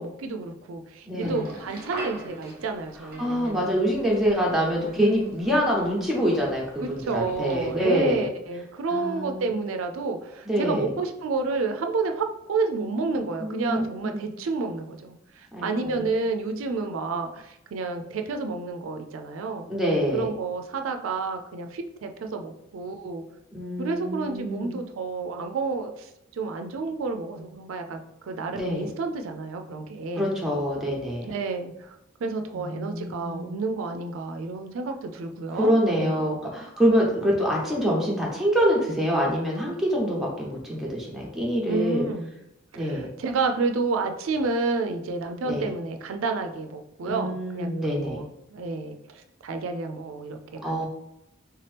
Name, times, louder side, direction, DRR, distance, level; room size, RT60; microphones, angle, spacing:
voice 1, 0.0-3.7 6.8-19.7 20.1-23.2 23.8-30.3 31.3-31.9 32.2-36.4 41.7-42.3 42.7-50.8, right 3 dB, 90° right, 5 dB, 0.4 m, -30 dB
voice 2, 1.1-1.5 3.2-8.3 8.9-9.6 10.5-10.9 13.4-14.3 15.5-16.1 19.7-20.3 23.5-24.7 28.5-28.9 30.2-31.3 32.5-33.4 35.5-42.1 42.7-43.1 45.4-45.7 47.1-48.2 50.6-50.8, equal, ahead, -3 dB, 0.8 m, -25 dB
sound 1, 1.2-8.0, right 1 dB, 50° right, 0.7 m, -43 dB
3.4 x 2.9 x 3.3 m, 0.85 s
head